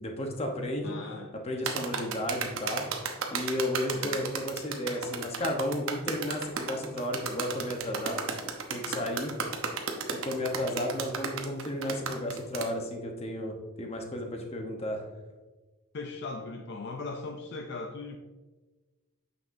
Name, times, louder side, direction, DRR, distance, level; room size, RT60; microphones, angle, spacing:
voice 1, 0.0-1.0 1.4-2.8 3.3-8.2 8.7-9.3 10.2-15.0, left 1 dB, 30° left, 2 dB, 0.9 m, -33 dB
voice 2, 0.8-1.4 3.9-4.3 15.9-18.2, left 3 dB, 50° left, 4 dB, 0.5 m, -39 dB
Cartoon Running Footsteps, 1.7-12.7, right 5 dB, 65° right, 0.9 m, -34 dB
9.1 x 5.9 x 2.6 m, 1.2 s
head